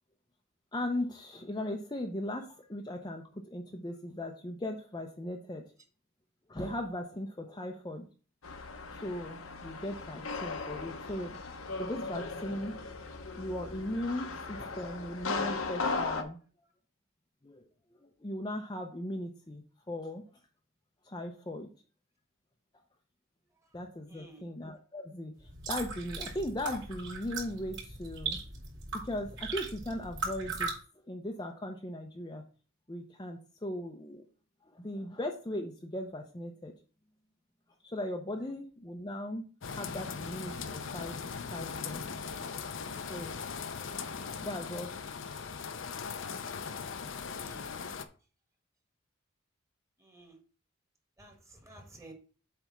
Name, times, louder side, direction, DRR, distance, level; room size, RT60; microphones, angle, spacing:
voice 1, 0.7-5.7 6.5-8.1 8.9-11.4 11.8-12.8 13.4-16.4 17.4-17.6 18.0-20.2 21.0-21.7 23.7-28.4 28.9-30.7 31.1-32.4 32.9-34.2 34.7-36.7 37.8-41.2 41.4-42.1 43.0-43.4 43.8-44.1 44.4-44.9, left 1 dB, 20° left, 2 dB, 0.6 m, -38 dB
sound 1, 8.4-16.2, left 3 dB, 85° left, 1.1 m, -37 dB
voice 2, 24.1-24.5 47.3-47.6 50.0-50.4 51.2-52.1, right 2 dB, 15° right, 2 dB, 1.6 m, -53 dB
sound 2, 25.4-30.7, right 4 dB, 60° right, 3.8 m, -38 dB
sound 3, 39.6-48.0, left 5 dB, 65° left, 0.6 m, -39 dB
8.1 x 3.4 x 5.9 m, 0.38 s
head